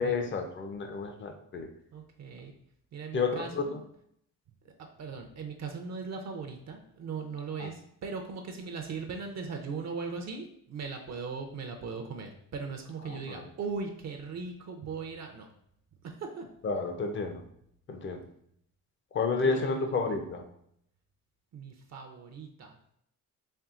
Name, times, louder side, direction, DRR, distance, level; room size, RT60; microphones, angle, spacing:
voice 1, 0.0-1.7 3.1-3.8 7.6-7.7 13.1-13.5 16.6-17.4 17.9-18.3 19.1-20.4, left 4 dB, 35° left, 6 dB, 0.6 m, -31 dB
voice 2, 1.9-2.5 2.9-3.8 4.6-15.5 16.2-16.5 19.4-19.9 21.5-22.8, right 5 dB, 50° right, 3 dB, 0.6 m, -39 dB
4.4 x 3.3 x 2.4 m, 0.71 s
cardioid pair, 100°, 33 cm